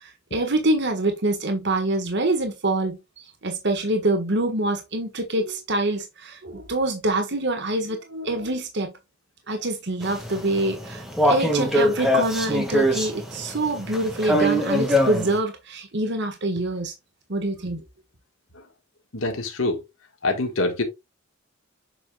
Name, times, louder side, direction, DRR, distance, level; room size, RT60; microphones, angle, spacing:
voice 1, 0.0-8.9 9.5-16.9 17.3-17.8, right 2 dB, 60° right, 1.6 m, -25 dB
sound 1, 10.0-15.4, equal, ahead, 1.8 m, -23 dB
voice 2, 19.1-19.8 20.2-20.8, left 2 dB, 80° left, 1.7 m, -25 dB
7.5 x 6.0 x 2.4 m
head